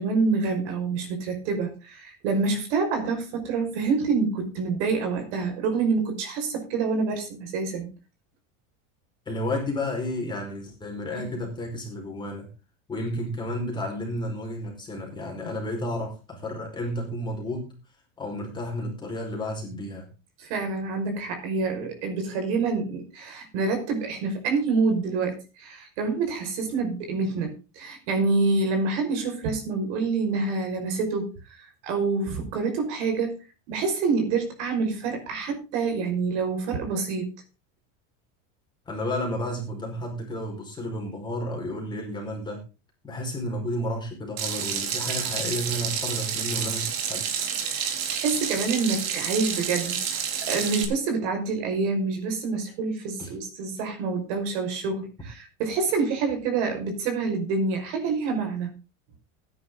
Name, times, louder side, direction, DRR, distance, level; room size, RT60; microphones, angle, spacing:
voice 1, 0.0-7.9 20.4-31.3 31.6-33.4 33.7-37.3 47.6-58.7, right 4 dB, 60° right, 5 dB, 5.5 m, -27 dB
voice 2, 9.2-12.5 12.9-17.7 18.2-20.1 38.8-42.6 43.0-47.3 53.2-53.3, left 1 dB, 10° left, 0 dB, 5.1 m, -32 dB
Water tap faucet / Sink (filling or washing), 44.4-50.8, right 7 dB, 80° right, 3.8 m, -29 dB
16.0 x 10.0 x 3.9 m, 0.30 s
supercardioid pair, 170°, 39 cm